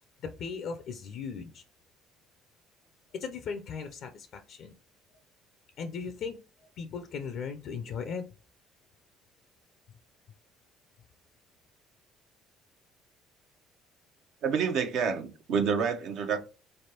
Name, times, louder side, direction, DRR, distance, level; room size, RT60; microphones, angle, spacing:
voice 1, 0.2-1.6 3.1-4.7 5.8-6.4 6.8-8.2, left 6 dB, 65° left, 0.4 m, -37 dB
voice 2, 14.4-16.4, right 6 dB, 70° right, 0.7 m, -28 dB
3.8 x 3.3 x 2.8 m
supercardioid pair, 70°, 0 cm